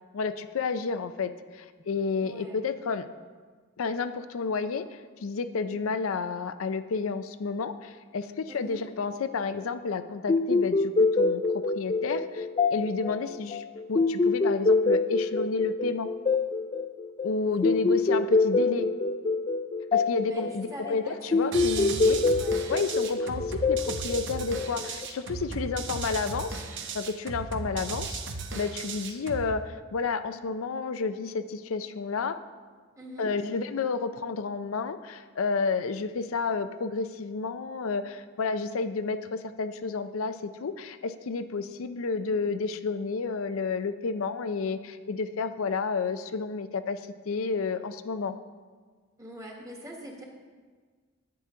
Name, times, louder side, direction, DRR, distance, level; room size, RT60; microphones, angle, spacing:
voice 1, 0.1-3.1 3.8-11.4 11.8-16.1 17.2-18.9 19.9-22.2 22.7-26.6 26.9-28.2 28.5-32.4 33.2-47.0 47.3-48.4, left 4 dB, 85° left, 10 dB, 0.5 m, -31 dB
voice 2, 2.2-2.6 8.5-8.8 20.2-21.8 22.1-22.6 25.5-25.9 32.9-33.3 49.2-50.2, equal, 15° right, -1 dB, 1.6 m, -44 dB
sound 1, 10.3-25.1, left 3 dB, 30° left, 0.4 m, -26 dB
sound 2, 21.5-29.5, right 4 dB, 60° right, 0.8 m, -36 dB
11.5 x 8.8 x 3.7 m, 1.5 s
head